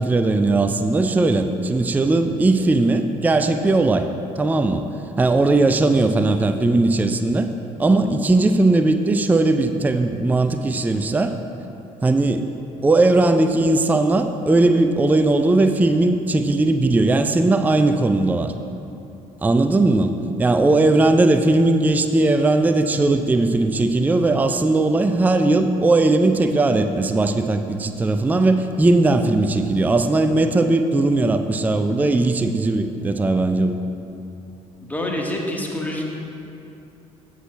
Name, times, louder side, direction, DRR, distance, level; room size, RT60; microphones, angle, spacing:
voice 1, 0.0-4.1 4.4-4.9 5.2-7.5 7.8-11.3 12.0-12.5 12.8-18.5 19.4-33.8, right 2 dB, 10° right, 7 dB, 0.4 m, -18 dB
voice 2, 34.8-36.1, left 1 dB, 10° left, -1 dB, 1.3 m, -26 dB
15.5 x 6.1 x 2.2 m, 2.9 s
figure-of-eight pair, 50°, 18 cm